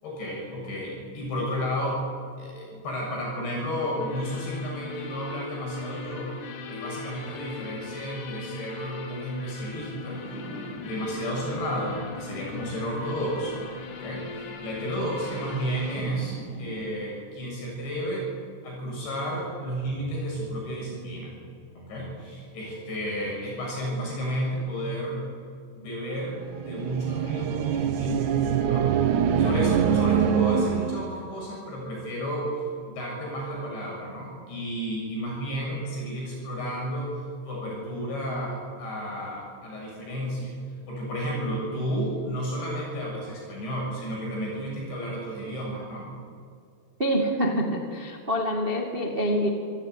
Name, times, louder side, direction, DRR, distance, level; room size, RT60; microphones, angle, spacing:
voice 1, 0.0-2.0 2.4-6.3 6.7-10.2 10.8-13.7 14.0-18.3 18.6-21.4 21.8-25.3 25.8-28.9 29.4-32.5 32.9-37.1 37.5-40.5 40.9-46.1, equal, 75° left, -2 dB, 9.2 m, -32 dB
sound 1, 4.0-16.0, left 5 dB, 55° left, 2.8 m, -40 dB
sound 2, 10.0-16.8, right 2 dB, 25° right, 7.0 m, -45 dB
sound 3, 26.5-31.1, right 8 dB, 85° right, 1.7 m, -24 dB
voice 2, 47.0-49.5, equal, 60° right, 2 dB, 0.6 m, -26 dB
26.5 x 16.5 x 9.4 m, 2.2 s
omnidirectional pair, 5.2 m